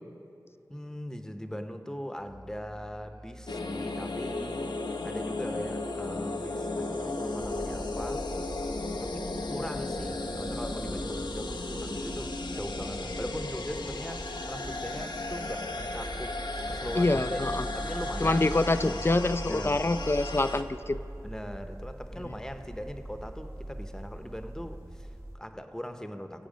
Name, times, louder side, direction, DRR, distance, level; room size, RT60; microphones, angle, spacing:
voice 1, 0.7-8.2 9.0-17.5 17.7-18.5 18.8-19.0 19.4-19.9 21.2-26.5, equal, 10° left, 7 dB, 0.9 m, -40 dB
Musical instrument, 2.2-17.2, equal, 75° right, 1.3 m, -50 dB
sound 1, 3.5-20.6, left 2 dB, 90° left, 0.8 m, -35 dB
sound 2, 7.4-25.4, right 1 dB, 40° right, 1.4 m, -42 dB
voice 2, 17.0-17.6 18.2-21.0, left 2 dB, 35° left, 12 dB, 0.5 m, -26 dB
21.0 x 8.5 x 5.1 m, 2.7 s
wide cardioid pair, 60°, 7 cm